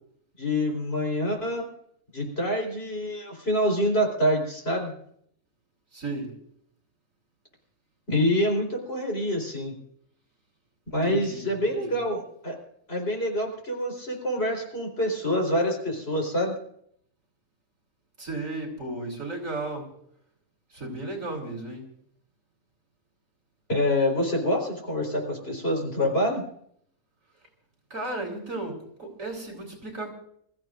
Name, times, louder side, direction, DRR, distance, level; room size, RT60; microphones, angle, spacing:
voice 1, 0.4-1.7 2.1-4.9 8.1-9.7 10.9-12.6 12.9-16.5 23.7-26.4, left 1 dB, 40° left, 1 dB, 4.5 m, -26 dB
voice 2, 5.9-6.3 10.9-12.0 18.2-19.9 20.7-21.8 27.9-30.1, right 2 dB, 55° right, 1 dB, 4.1 m, -34 dB
27.0 x 15.0 x 2.6 m, 0.67 s
omnidirectional pair, 1.6 m